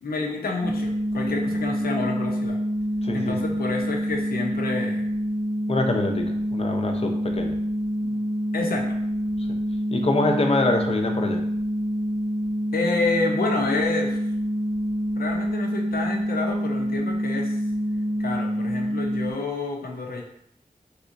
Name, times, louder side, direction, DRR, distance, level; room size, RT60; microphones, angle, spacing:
voice 1, 0.0-2.6 3.1-5.1 8.0-8.2 8.5-9.0 12.7-14.2 15.2-17.6 18.2-20.2, left 3 dB, 85° left, 2 dB, 0.6 m, -29 dB
sound 1, 0.6-19.3, equal, 25° right, 0.4 m, -27 dB
voice 2, 3.0-3.5 5.7-7.6 9.4-9.6 9.9-11.4, left 2 dB, 40° left, 3 dB, 0.6 m, -25 dB
3.4 x 2.8 x 2.6 m, 0.71 s
cardioid pair, 50°, 15 cm